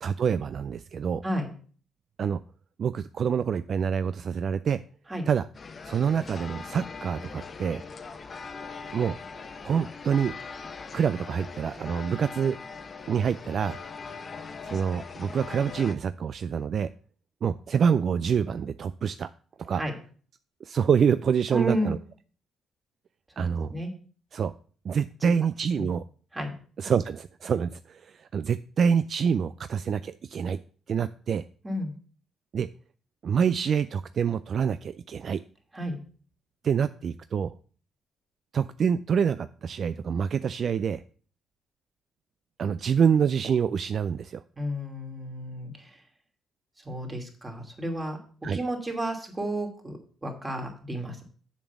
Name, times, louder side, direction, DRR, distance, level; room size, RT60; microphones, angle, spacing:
voice 1, 0.0-1.2 2.2-2.4 2.8-4.8 5.3-5.5 5.8-7.8 8.9-9.2 9.6-10.3 10.9-12.6 13.1-13.8 14.6-16.9 17.4-19.3 19.6-19.8 20.6-22.0 23.4-23.7 24.3-24.5 24.8-26.0 26.8-30.6 30.9-31.4 32.5-32.7 33.2-35.4 36.6-37.5 38.5-41.0 42.6-44.4 48.4-48.6, right 7 dB, 55° right, 13 dB, 0.3 m, -26 dB
sound 1, 5.5-16.0, left 5 dB, 40° left, 0.9 m, -41 dB
voice 2, 21.5-22.0 23.7-23.9 25.2-25.3 25.7-25.8 26.3-26.5 31.6-31.9 35.7-36.0 44.6-45.9 46.8-48.2 48.5-51.2, right 1 dB, 20° right, 2 dB, 2.5 m, -32 dB
7.1 x 5.3 x 7.0 m, 0.43 s
cardioid pair, 75°, 0 cm